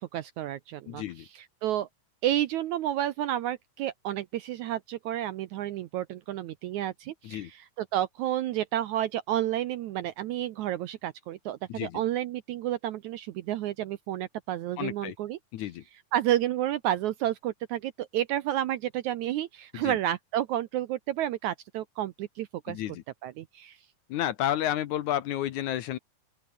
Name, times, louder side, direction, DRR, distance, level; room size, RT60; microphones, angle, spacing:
voice 1, 0.0-1.9 2.2-15.4 16.1-22.8 23.2-23.8, right 12 dB, 75° right, 1.8 m, -31 dB
voice 2, 0.9-1.3 7.2-7.5 11.7-12.0 14.8-15.2 15.5-15.8 19.7-20.0 22.7-23.0 24.1-26.0, left 12 dB, 70° left, 2.1 m, -31 dB
open air
omnidirectional pair, 4.1 m